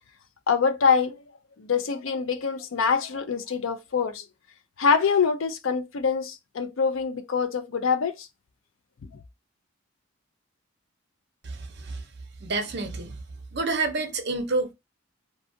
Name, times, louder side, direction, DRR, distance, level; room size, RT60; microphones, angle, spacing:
voice 1, 0.5-1.2 1.6-4.2 4.8-8.3 9.0-9.1, left 6 dB, 75° left, 0.5 m, -25 dB
voice 2, 11.4-12.0 12.4-13.2 13.5-14.7, right 3 dB, 55° right, 0.6 m, -28 dB
2.6 x 2.4 x 2.6 m
head